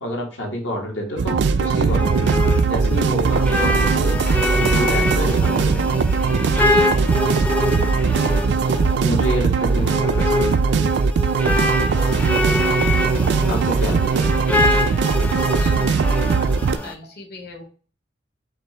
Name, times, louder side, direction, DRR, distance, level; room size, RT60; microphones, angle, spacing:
voice 1, 0.0-2.0 2.7-4.2 4.7-5.9 9.0-10.7 13.4-14.3, equal, 75° left, -1 dB, 1.7 m, -28 dB
sound 1, 1.2-16.8, right 5 dB, 60° right, 0.3 m, -20 dB
sound 2, 1.6-16.9, left 2 dB, 10° left, 0.5 m, -25 dB
Musical instrument, 1.7-8.6, right 1 dB, 35° left, 1.1 m, -33 dB
voice 2, 14.2-14.5 15.2-17.6, left 2 dB, 55° left, 2 dB, 1.3 m, -42 dB
6.4 x 2.5 x 3.3 m, 0.40 s
head